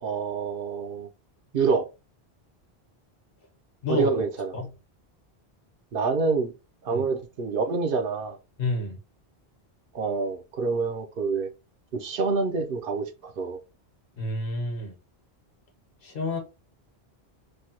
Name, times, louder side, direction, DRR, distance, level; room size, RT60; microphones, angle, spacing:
voice 1, 0.0-1.1 1.5-1.9 3.9-4.5 5.9-6.5 6.8-8.4 9.9-11.5 11.9-13.6, right 4 dB, 65° right, 0.7 m, -27 dB
voice 2, 8.6-9.0 14.2-14.9 16.0-16.4, left 2 dB, 60° left, 1.1 m, -29 dB
3.3 x 2.1 x 2.8 m
omnidirectional pair, 1.1 m